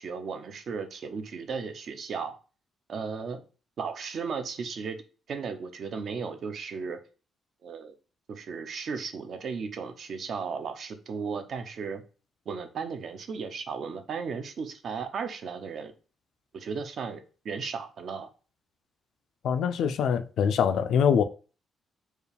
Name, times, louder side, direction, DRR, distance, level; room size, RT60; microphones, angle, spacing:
voice 1, 0.0-2.4 2.9-3.4 3.8-5.0 5.3-7.0 7.6-7.9 8.3-12.0 12.5-15.9 16.5-18.3, right 5 dB, 45° right, 0.5 m, -35 dB
voice 2, 19.4-21.2, left 7 dB, 65° left, 0.3 m, -24 dB
4.5 x 2.4 x 3.3 m
cardioid pair, 180°, 0 cm